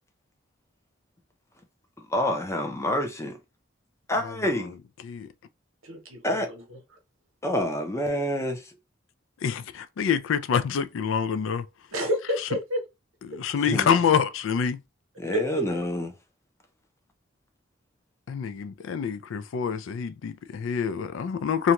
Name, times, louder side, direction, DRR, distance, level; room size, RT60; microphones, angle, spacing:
voice 1, 2.0-3.4 4.1-4.7 6.2-6.5 7.4-8.7 13.6-13.9 15.2-16.1, left 1 dB, 15° left, 0.5 m, -27 dB
voice 2, 5.8-6.8 11.9-12.8 15.3-15.7, equal, 90° right, 0.9 m, -30 dB
voice 3, 9.4-11.6 13.3-14.8 18.3-21.7, left 7 dB, 70° left, 0.4 m, -26 dB
2.6 x 2.2 x 2.9 m
head